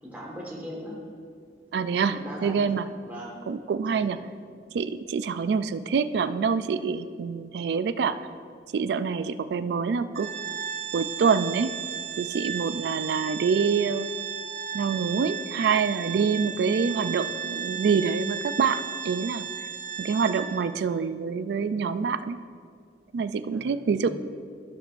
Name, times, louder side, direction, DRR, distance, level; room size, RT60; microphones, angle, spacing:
voice 1, 0.0-1.0 2.0-2.7 3.0-3.3 3.9-4.2 23.5-24.1, equal, 10° right, -6 dB, 1.5 m, -39 dB
voice 2, 1.7-2.9 3.5-4.2 4.7-8.2 8.7-10.3 10.9-11.7 12.2-14.1 14.7-19.5 20.0-22.4 23.1-24.1, right 5 dB, 70° right, 13 dB, 0.3 m, -26 dB
Organ, 10.1-20.8, right 8 dB, 40° right, 0.7 m, -35 dB
14.5 x 6.3 x 2.5 m, 2.1 s
head